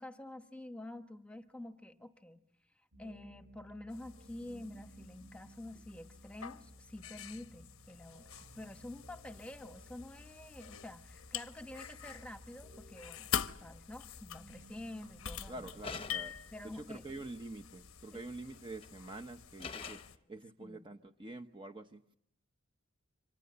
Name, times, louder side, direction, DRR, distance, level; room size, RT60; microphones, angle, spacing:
voice 1, 0.0-2.4 3.0-13.3 13.6-15.7 16.5-17.0 18.1-18.2 20.6-20.9, left 1 dB, 5° left, 1.1 m, -48 dB
sound 1, 2.9-16.3, right 1 dB, 50° right, 5.3 m, -58 dB
sound 2, 3.9-20.2, left 9 dB, 90° left, 1.0 m, -46 dB
voice 2, 15.5-16.4 16.7-22.0, right 2 dB, 25° right, 0.9 m, -47 dB
sound 3, 15.8-16.5 18.5-18.9 19.6-20.2, left 5 dB, 25° left, 0.9 m, -44 dB
28.0 x 25.5 x 6.9 m
head